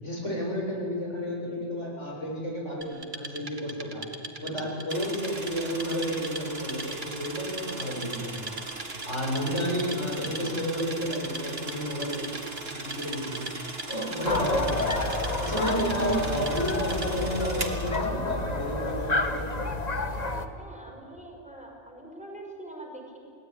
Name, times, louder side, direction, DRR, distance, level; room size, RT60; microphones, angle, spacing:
voice 1, 0.0-4.1 4.4-8.6 9.0-12.3 12.7-13.5 13.9-15.0 15.4-19.5, equal, 90° left, -2 dB, 8.1 m, -31 dB
Wood, 2.8-17.3, right 3 dB, 45° right, 2.2 m, -41 dB
sound 1, 4.9-18.1, right 3 dB, 60° right, 2.6 m, -39 dB
sound 2, 14.2-20.5, left 2 dB, 35° left, 1.6 m, -29 dB
voice 2, 20.2-23.2, right 1 dB, 5° right, 0 dB, 5.8 m, -44 dB
29.0 x 19.5 x 10.0 m, 2.5 s
omnidirectional pair, 1.2 m